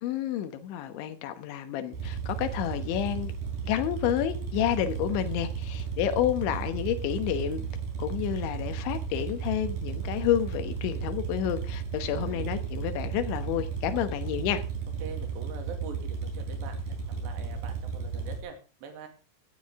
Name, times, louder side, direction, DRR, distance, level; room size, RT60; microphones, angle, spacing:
voice 1, 0.0-3.3 3.6-7.6 8.0-14.6, left 11 dB, 80° left, 3.6 m, -30 dB
sound 1, 1.9-18.4, right 6 dB, 50° right, 5.4 m, -34 dB
voice 2, 12.1-12.5 15.0-16.9 17.2-19.1, right 6 dB, 70° right, 4.5 m, -43 dB
16.5 x 12.5 x 3.7 m
omnidirectional pair, 5.4 m